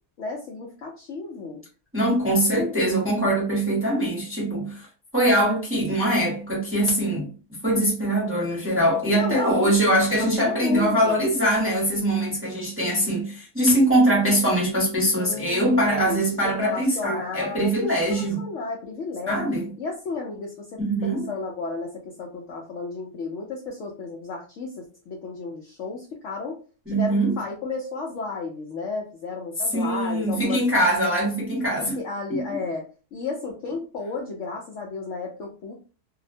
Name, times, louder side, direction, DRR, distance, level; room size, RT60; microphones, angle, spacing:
voice 1, 0.2-1.6 9.1-9.7 10.2-11.2 15.2-19.4 19.8-26.6 26.9-30.6 31.0-31.1 31.8-32.9 33.1-35.7, left 4 dB, 65° left, 0.7 m, -33 dB
voice 2, 1.9-4.8 5.1-7.3 7.6-18.5 19.3-19.6 20.8-21.3 26.9-27.3 29.7-32.0 32.3-32.4, right 1 dB, 10° right, 0.7 m, -22 dB
2.8 x 2.0 x 2.5 m
omnidirectional pair, 1.7 m